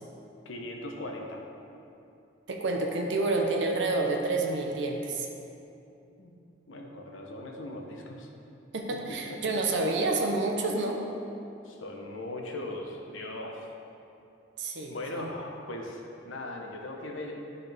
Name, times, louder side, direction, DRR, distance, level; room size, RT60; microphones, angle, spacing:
voice 1, 0.4-1.4 6.2-6.3 6.7-8.3 9.1-9.4 11.6-13.6 14.9-17.3, left 1 dB, 85° left, 1 dB, 0.9 m, -39 dB
voice 2, 2.5-5.3 8.7-11.1 14.6-15.3, right 2 dB, 70° right, 2 dB, 0.8 m, -29 dB
12.0 x 4.1 x 3.5 m, 2.7 s
head